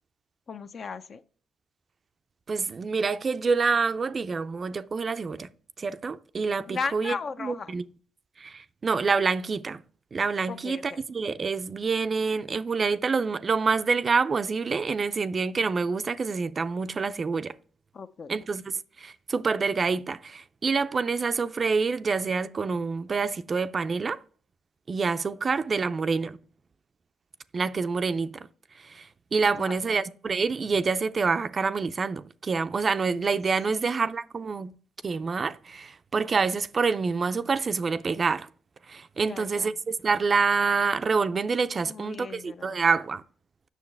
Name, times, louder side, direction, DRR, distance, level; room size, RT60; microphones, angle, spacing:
voice 1, 0.5-1.2 6.7-7.8 10.5-11.0 17.9-18.3 29.6-30.0 33.7-33.9 39.3-39.8 41.9-42.7, left 5 dB, 50° left, 0.6 m, -36 dB
voice 2, 2.5-5.5 5.8-7.8 8.4-9.8 10.1-17.5 18.3-18.7 19.0-24.2 24.9-26.4 27.5-28.5 28.8-34.7 35.0-38.5 38.9-43.2, right 4 dB, 40° right, 0.4 m, -27 dB
7.4 x 6.3 x 3.3 m
cardioid pair, 90°, 0 cm